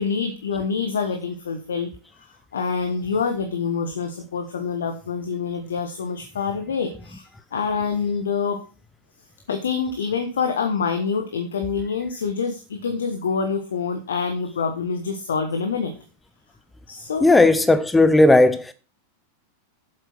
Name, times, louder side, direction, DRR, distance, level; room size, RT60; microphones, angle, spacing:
voice 1, 0.0-1.9 2.2-8.6 9.5-15.9 16.9-17.3, left 5 dB, 65° left, 1.3 m, -26 dB
voice 2, 17.2-18.7, left 2 dB, 10° left, 0.6 m, -15 dB
8.0 x 7.8 x 6.1 m
figure-of-eight pair, 90°, 0 cm